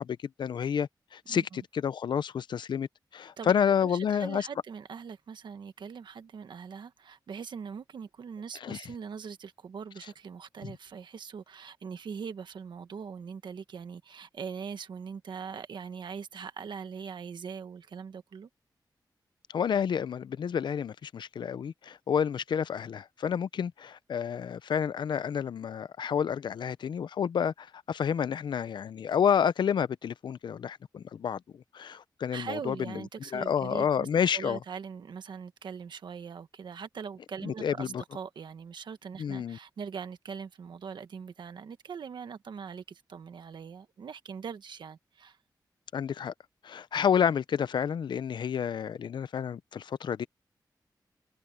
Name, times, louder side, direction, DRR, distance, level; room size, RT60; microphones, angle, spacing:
voice 1, 0.0-4.5 8.6-8.8 19.5-31.4 31.7-33.0 33.3-34.6 37.4-38.0 39.2-39.6 45.9-46.3 46.6-50.3, left 8 dB, 80° left, 0.6 m, -29 dB
voice 2, 1.3-1.6 3.4-18.5 32.3-34.1 34.3-45.4, right 6 dB, 80° right, 1.4 m, -41 dB
wide cardioid pair, 155°, 8 cm